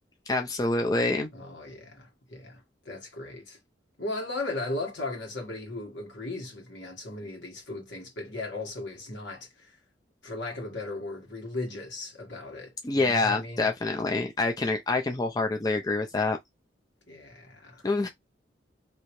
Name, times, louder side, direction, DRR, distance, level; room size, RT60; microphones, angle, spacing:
voice 1, 0.3-1.3 12.8-16.4 17.8-18.1, left 3 dB, 20° left, 0.4 m, -26 dB
voice 2, 1.3-3.6 4.0-9.8 10.2-13.7 17.1-17.8, left 2 dB, 75° left, 1.5 m, -37 dB
3.0 x 2.8 x 3.0 m
head